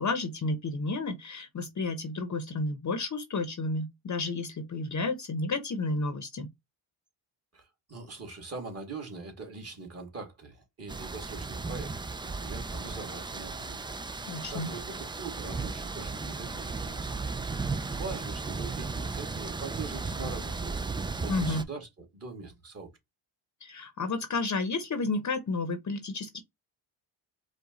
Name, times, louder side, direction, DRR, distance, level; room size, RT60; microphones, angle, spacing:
voice 1, 0.0-6.5 14.2-14.7 21.3-21.6 23.6-26.4, left 3 dB, 40° left, 0.8 m, -31 dB
voice 2, 7.5-13.8 14.5-17.3 17.9-20.9 21.2-22.9, right 4 dB, 30° right, 2.2 m, -42 dB
sound 1, 10.9-21.6, right 4 dB, 10° right, 0.3 m, -35 dB
4.9 x 2.4 x 3.9 m
cardioid pair, 90°, 46 cm